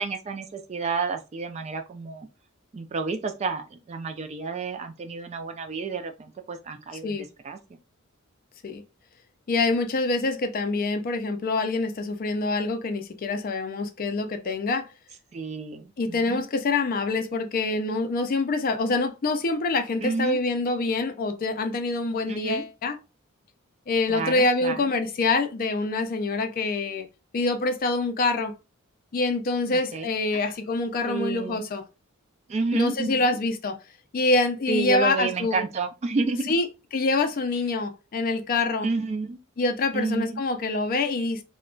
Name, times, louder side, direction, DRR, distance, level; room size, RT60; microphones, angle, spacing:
voice 1, 0.0-2.3 2.7-7.2 7.4-7.6 15.3-16.5 20.0-20.4 22.3-22.6 24.1-24.8 29.7-30.1 30.3-30.5 31.0-31.7 32.5-33.4 34.7-36.6 38.8-39.4 39.9-40.4, right 4 dB, 30° right, 0.3 m, -30 dB
voice 2, 9.5-14.9 16.0-23.0 23.9-27.1 27.3-28.5 29.1-31.8 32.7-33.8 34.1-35.6 36.5-36.6 36.9-38.9 39.6-41.4, left 3 dB, 40° left, 0.4 m, -25 dB
2.3 x 2.1 x 3.6 m
head